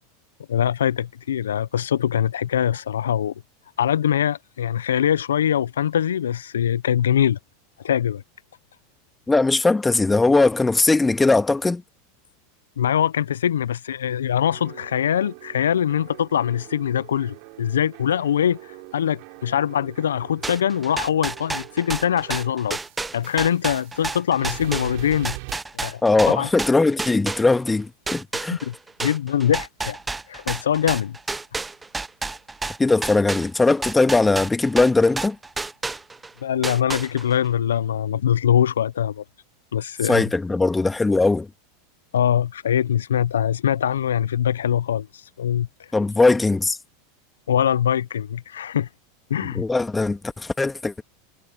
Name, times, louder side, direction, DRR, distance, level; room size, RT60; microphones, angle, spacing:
voice 1, 0.5-3.3 3.8-7.4 7.8-8.2 12.8-22.8 23.1-25.3 25.7-26.0 26.3-26.5 28.6-28.7 29.0-30.0 30.3-31.2 36.4-39.2 39.7-40.2 42.1-45.7 47.5-48.9 49.3-49.6, left 9 dB, 80° left, 0.6 m, -23 dB
voice 2, 9.3-11.8 26.0-28.6 32.8-35.4 40.0-41.5 45.9-46.8 49.5-51.0, left 3 dB, 10° left, 1.7 m, -19 dB
sound 1, 14.4-24.1 24.4-25.6, right 37 dB, 60° right, 5.7 m, -43 dB
sound 2, 20.4-27.7 28.1-36.3 36.6-37.4, right 3 dB, 15° right, 0.8 m, -30 dB
hypercardioid pair, 95°, 0 cm